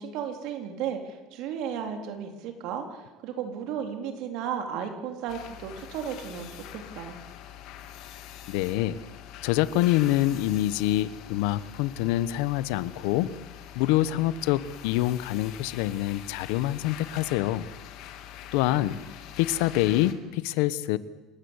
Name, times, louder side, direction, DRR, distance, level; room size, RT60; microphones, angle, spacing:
voice 1, 0.0-7.2 18.7-19.1, right 8 dB, 55° right, 5 dB, 3.5 m, -34 dB
sound 1, 5.3-20.1, left 11 dB, 50° left, 2.3 m, -44 dB
voice 2, 8.5-9.0 9.4-13.3 13.7-17.6 18.5-19.0 19.4-21.0, left 15 dB, 75° left, 16 dB, 1.0 m, -26 dB
27.5 x 13.5 x 9.7 m, 1.2 s
cardioid pair, 170°, 0 cm